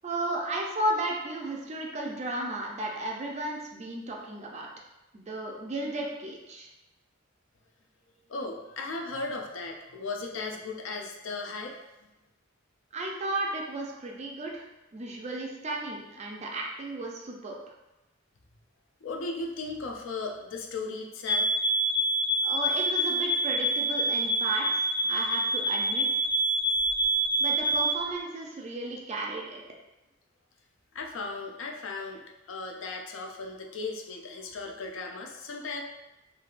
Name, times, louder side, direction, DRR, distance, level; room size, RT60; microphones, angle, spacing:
voice 1, 0.0-4.7 5.1-6.7 12.9-14.6 14.9-17.6 22.4-26.1 27.4-29.6, right 2 dB, 35° right, -1 dB, 0.4 m, -34 dB
voice 2, 8.3-11.8 19.0-21.4 30.9-32.2 32.5-35.8, left 3 dB, 70° left, 1 dB, 0.4 m, -36 dB
sound 1, 21.3-28.0, right 1 dB, 20° left, 0.7 m, -26 dB
3.3 x 2.3 x 2.4 m, 0.98 s
head